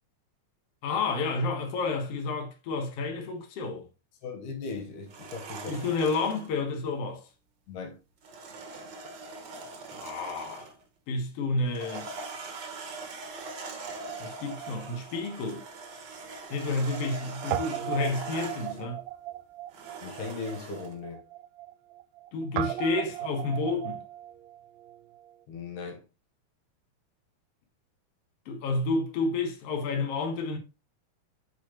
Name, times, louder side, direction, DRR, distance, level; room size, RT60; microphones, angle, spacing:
voice 1, 0.8-3.9 5.7-7.2 9.9-10.7 11.1-12.1 14.2-15.6 16.5-19.0 22.3-24.0 28.5-30.6, left 3 dB, 55° left, 2.2 m, -30 dB
voice 2, 4.2-5.9 7.7-8.0 20.0-21.2 25.5-26.0, left 4 dB, 85° left, 2.8 m, -38 dB
sound 1, 5.1-6.5 8.2-10.8 11.6-18.8 19.7-20.9, right 3 dB, 60° right, 1.1 m, -42 dB
Guitar, 13.8-16.3 16.5-16.6 17.5-25.4, right 12 dB, 80° right, 1.6 m, -38 dB
8.4 x 5.1 x 3.0 m
omnidirectional pair, 3.6 m